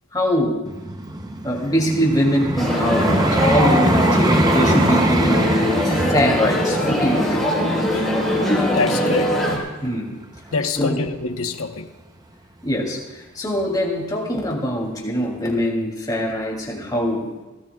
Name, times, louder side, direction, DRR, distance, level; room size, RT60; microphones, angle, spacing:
voice 1, 0.1-0.6 1.4-7.5 9.8-10.1 10.6-11.0 12.6-17.3, equal, 20° left, -1 dB, 2.9 m, -23 dB
Vehicle, 0.7-9.7 10.4-10.5, right 1 dB, 20° right, 0.7 m, -23 dB
sound 1, 2.6-9.6, left 1 dB, ahead, 4.2 m, -21 dB
voice 2, 8.7-9.3 10.5-11.9, left 4 dB, 80° left, 6 dB, 1.1 m, -25 dB
24.5 x 17.5 x 2.4 m, 1.2 s
head